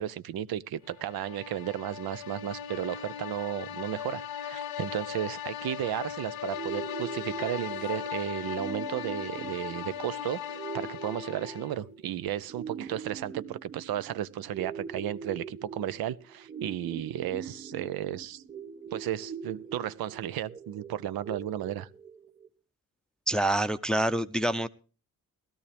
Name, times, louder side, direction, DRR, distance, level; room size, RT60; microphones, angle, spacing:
voice 1, 0.0-18.4 18.9-21.9, right 11 dB, 85° right, 0.6 m, -34 dB
sound 1, 0.9-11.9, left 9 dB, 80° left, 0.7 m, -38 dB
sound 2, 6.5-22.5, right 6 dB, 25° right, 1.8 m, -42 dB
voice 2, 23.3-24.7, right 1 dB, ahead, 0.5 m, -26 dB
16.5 x 12.5 x 3.4 m
cardioid pair, 70°, 35 cm